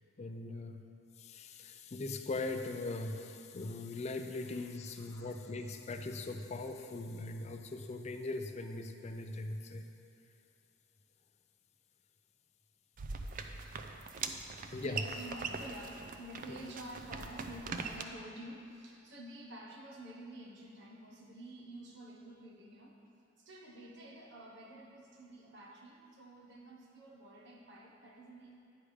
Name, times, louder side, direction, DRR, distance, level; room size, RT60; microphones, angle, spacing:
voice 1, 0.2-0.8 1.2-9.8 14.7-15.0, left 2 dB, 35° left, 5 dB, 0.4 m, -40 dB
voice 2, 5.0-5.4 6.1-6.2 14.4-23.0 23.4-28.5, right 1 dB, 60° right, -1 dB, 1.2 m, -50 dB
sound 1, 13.0-18.0, right 4 dB, 45° right, 0.4 m, -42 dB
9.9 x 5.0 x 4.9 m, 2.7 s
head